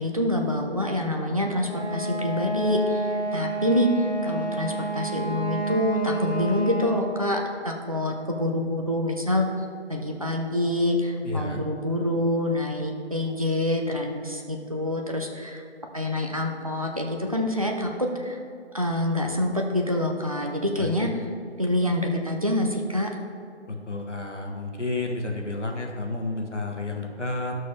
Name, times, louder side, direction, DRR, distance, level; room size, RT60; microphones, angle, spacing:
voice 1, 0.0-9.4 9.9-15.6 15.9-18.4 18.7-21.1 21.6-23.2, left 1 dB, 30° right, 1 dB, 0.6 m, -26 dB
Wind instrument woodwind instrument, 1.6-7.3, right 3 dB, 60° right, 1.8 m, -30 dB
voice 2, 11.2-11.6 20.8-21.1 23.7-27.6, left 2 dB, 85° left, 2 dB, 1.4 m, -31 dB
12.0 x 6.3 x 3.0 m, 2.5 s
figure-of-eight pair, 165°, 35 cm